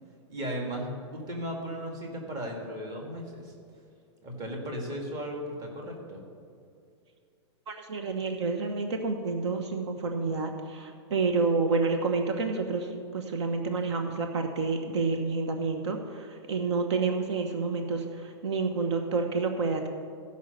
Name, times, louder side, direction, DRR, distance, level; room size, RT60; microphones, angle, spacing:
voice 1, 0.3-3.5 4.2-6.2, equal, 25° right, 0 dB, 1.8 m, -36 dB
voice 2, 7.7-19.9, right 4 dB, 70° right, 5 dB, 1.0 m, -29 dB
14.0 x 5.5 x 6.4 m, 2.4 s
supercardioid pair, 160°, 15 cm